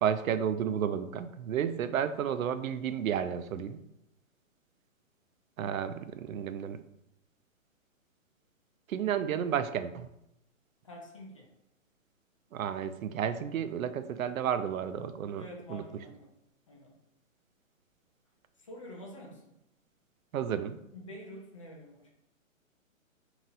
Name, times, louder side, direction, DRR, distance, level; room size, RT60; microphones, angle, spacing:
voice 1, 0.0-3.8 5.6-6.8 8.9-10.1 12.5-15.8 20.3-20.8, right 8 dB, 80° right, 11 dB, 0.5 m, -32 dB
voice 2, 10.8-11.5 15.3-16.3 16.7-17.0 18.6-19.6 20.9-22.1, left 1 dB, 25° left, -1 dB, 0.4 m, -47 dB
5.4 x 2.9 x 2.6 m, 0.83 s
hypercardioid pair, 150°, 41 cm